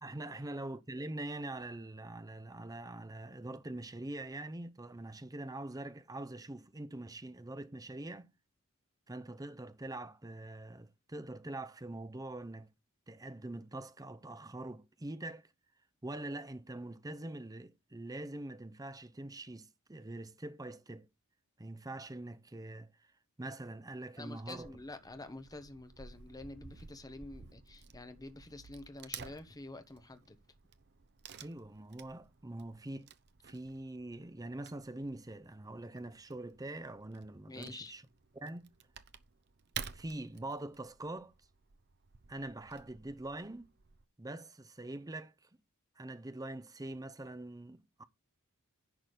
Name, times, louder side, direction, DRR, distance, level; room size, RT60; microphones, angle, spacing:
voice 1, 0.0-8.3 9.1-12.7 13.1-15.5 16.0-21.1 21.6-22.9 23.4-24.7 31.4-33.1 33.4-38.0 38.3-38.7 39.9-41.3 42.3-43.7 44.2-45.5 46.0-48.0, right 2 dB, 15° right, 0.7 m, -44 dB
voice 2, 24.2-30.4 37.5-37.9, left 2 dB, 15° left, 1.0 m, -48 dB
Wood / Tearing, 24.4-44.0, right 7 dB, 50° right, 0.8 m, -52 dB
10.5 x 3.9 x 6.6 m
head